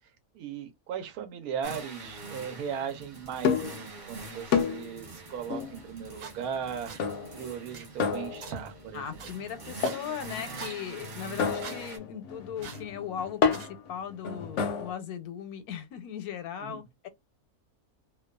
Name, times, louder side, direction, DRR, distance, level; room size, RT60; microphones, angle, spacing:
voice 1, 0.3-6.9 7.3-9.3 16.6-16.8, right 7 dB, 85° right, 1.2 m, -37 dB
sound 1, 1.6-12.0, right 2 dB, 40° right, 0.7 m, -44 dB
sound 2, 3.4-3.9 4.5-5.0 5.5-5.8 7.0-7.5 8.0-8.7 9.8-10.2 11.4-14.9, left 6 dB, 65° left, 0.8 m, -30 dB
sound 3, 6.2-6.3 6.9-7.0 7.7-7.9 8.4-8.5 9.2-9.3 9.8-10.0 10.6-10.7 11.6-11.8 12.6-12.8 13.5-13.7, right 6 dB, 65° right, 1.1 m, -42 dB
voice 2, 8.9-17.1, left 8 dB, 80° left, 1.1 m, -38 dB
2.6 x 2.2 x 2.2 m
omnidirectional pair, 1.6 m